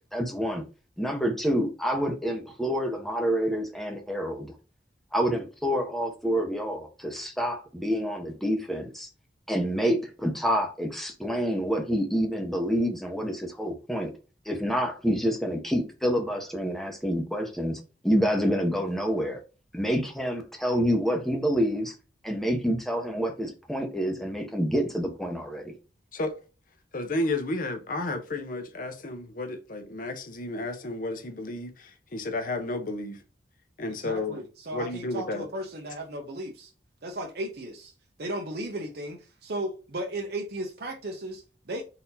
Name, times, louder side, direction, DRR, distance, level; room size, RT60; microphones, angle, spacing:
voice 1, 0.1-0.6 1.0-4.5 5.1-9.1 9.5-14.1 14.5-19.4 19.7-21.9 22.2-25.7, equal, ahead, 0.8 m, -27 dB
voice 2, 26.9-33.1 33.8-34.4 34.7-35.5, left 2 dB, 50° left, 0.8 m, -32 dB
voice 3, 34.0-36.7 37.0-37.9 38.2-41.8, right 1 dB, 60° right, 0.7 m, -35 dB
4.1 x 2.7 x 4.0 m
head